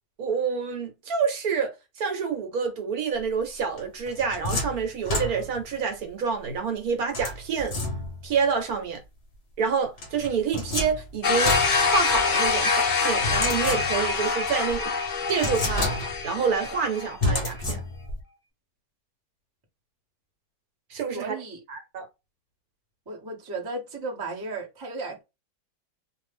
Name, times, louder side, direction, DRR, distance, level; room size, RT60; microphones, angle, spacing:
voice 1, 0.2-7.7 8.2-9.0 9.6-11.6 11.9-14.9 15.3-15.9 16.2-17.8 20.9-21.4 21.7-22.1, right 6 dB, 60° right, 1.2 m, -27 dB
sound 1, 3.8-5.7 7.1-8.3 10.0-12.5 13.2-14.2 14.7-14.8 15.3-16.4 17.2-18.2, left 2 dB, 45° left, 0.8 m, -30 dB
sound 2, 11.2-17.1, left 4 dB, 70° left, 0.4 m, -25 dB
voice 2, 21.1-21.6 23.1-25.2, right 3 dB, 25° right, 0.5 m, -34 dB
2.7 x 2.4 x 3.2 m
omnidirectional pair, 1.9 m